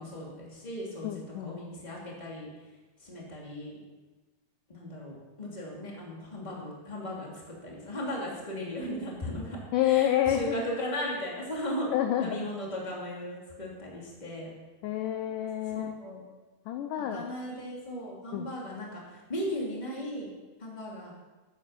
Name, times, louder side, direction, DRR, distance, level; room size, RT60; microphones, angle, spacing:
voice 1, 0.0-1.1 1.4-2.5 3.0-3.8 4.7-7.3 7.6-9.6 9.8-11.9 12.2-14.5 15.7-16.2 17.1-20.3 20.6-21.1, equal, 10° left, -3 dB, 2.5 m, -37 dB
voice 2, 1.0-1.6 9.7-10.6 11.9-12.5 14.8-15.9 16.7-17.2 18.3-18.5, left 11 dB, 80° left, 6 dB, 2.0 m, -28 dB
13.0 x 9.2 x 6.0 m, 1.2 s
omnidirectional pair, 4.5 m